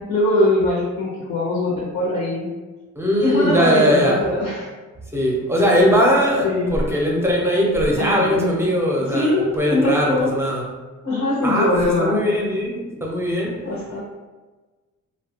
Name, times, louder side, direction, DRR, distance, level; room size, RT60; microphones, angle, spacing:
voice 1, 0.0-2.5 3.2-4.7 6.4-6.7 8.0-8.5 9.1-10.4 11.0-12.2 13.6-14.0, left 2 dB, 85° left, -6 dB, 0.8 m, -21 dB
voice 2, 3.0-4.2 5.1-10.6 11.4-13.6, equal, 10° right, -2 dB, 0.6 m, -20 dB
2.8 x 2.2 x 2.8 m, 1.3 s
cardioid pair, 120°, 32 cm